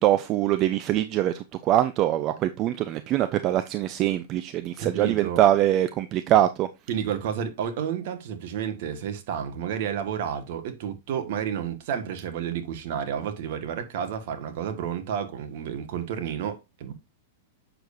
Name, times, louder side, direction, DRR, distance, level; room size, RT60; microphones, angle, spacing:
voice 1, 0.0-6.7, right 13 dB, 35° right, 0.6 m, -23 dB
voice 2, 4.8-5.4 6.9-16.9, right 8 dB, 60° right, 1.6 m, -31 dB
7.8 x 6.6 x 2.6 m
hypercardioid pair, 140°, 0 cm